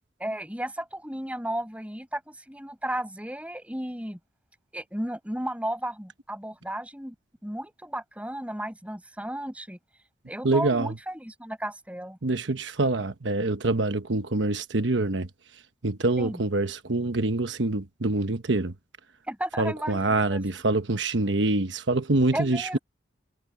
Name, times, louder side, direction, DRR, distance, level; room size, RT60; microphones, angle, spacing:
voice 1, 0.2-4.2 4.7-7.2 7.4-9.8 10.3-12.2 16.2-16.4 19.3-20.4 22.3-22.8, right 1 dB, 5° right, 7.2 m, -34 dB
voice 2, 10.4-10.9 12.2-15.3 15.8-18.7 19.6-22.8, right 2 dB, 85° right, 1.1 m, -25 dB
head